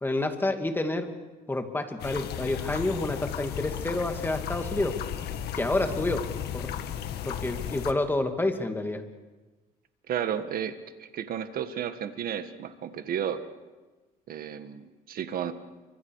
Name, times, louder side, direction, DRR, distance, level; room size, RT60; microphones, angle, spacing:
voice 1, 0.0-1.1 1.5-5.0 5.6-6.2 6.5-6.7 7.2-9.0, left 2 dB, 10° left, 5 dB, 2.5 m, -29 dB
sound 1, 2.0-7.9, left 9 dB, 75° left, 1.9 m, -35 dB
voice 2, 10.1-13.4 14.3-15.5, right 9 dB, 60° right, 9 dB, 1.7 m, -33 dB
29.5 x 25.5 x 4.9 m, 1.2 s
cardioid pair, 110°, 17 cm